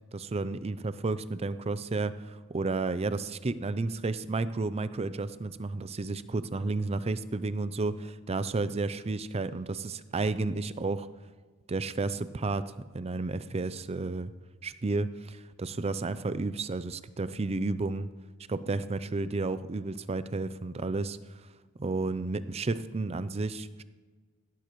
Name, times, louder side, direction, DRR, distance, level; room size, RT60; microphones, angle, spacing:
voice 1, 0.1-11.1 11.7-12.6 12.9-14.3 14.6-18.1 18.5-21.2 21.8-23.8, right 3 dB, 30° right, 14 dB, 0.5 m, -32 dB
17.0 x 11.5 x 3.1 m, 1.4 s
head